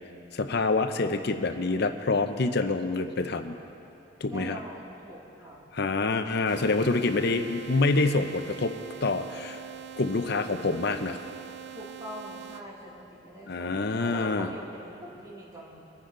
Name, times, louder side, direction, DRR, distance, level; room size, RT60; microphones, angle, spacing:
voice 1, 0.3-3.6 4.2-4.6 5.7-8.7 9.0-9.6 10.0-11.2 13.5-14.5, left 3 dB, 60° left, 8 dB, 0.7 m, -26 dB
voice 2, 4.3-5.6 11.7-15.8, equal, 20° right, -4 dB, 2.5 m, -43 dB
sound 1, 6.5-12.6, right 9 dB, 65° right, 0.6 m, -43 dB
24.0 x 9.8 x 3.9 m, 2.9 s
head